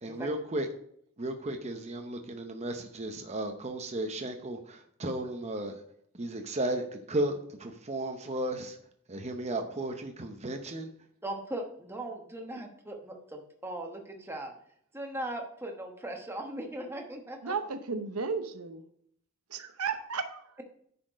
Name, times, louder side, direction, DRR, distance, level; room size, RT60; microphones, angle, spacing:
voice 1, 0.0-0.7 1.2-5.8 6.1-7.3 7.6-8.8 9.1-10.9, right 1 dB, 30° right, 4 dB, 0.7 m, -34 dB
voice 2, 11.2-14.5 14.9-17.6, right 1 dB, 10° right, 2 dB, 1.1 m, -39 dB
voice 3, 17.4-18.9 19.5-20.4, right 5 dB, 90° right, 8 dB, 0.8 m, -34 dB
9.9 x 4.3 x 5.1 m, 0.66 s
head